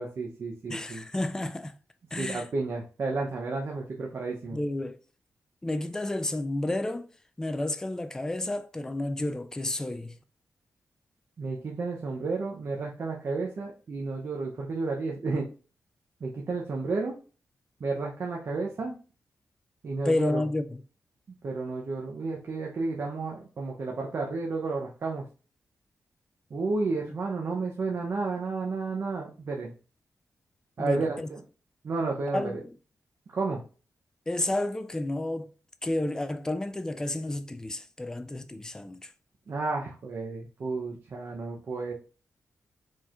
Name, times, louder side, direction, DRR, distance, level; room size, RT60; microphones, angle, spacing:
voice 1, 0.0-1.0 2.2-4.6 11.4-15.5 16.2-17.1 17.8-18.9 19.8-20.4 21.4-25.2 26.5-29.7 30.8-31.4 31.8-32.5 33.3-33.6 39.5-41.9, right 3 dB, 50° right, 0.8 m, -32 dB
voice 2, 0.7-1.7 2.1-2.5 4.5-5.0 5.6-7.1 7.4-10.2 20.0-20.8 27.1-27.2 30.8-31.3 32.3-32.7 34.3-35.5 35.8-39.1, left 1 dB, 10° left, 0.3 m, -31 dB
4.6 x 4.4 x 2.5 m
wide cardioid pair, 150°, 6 cm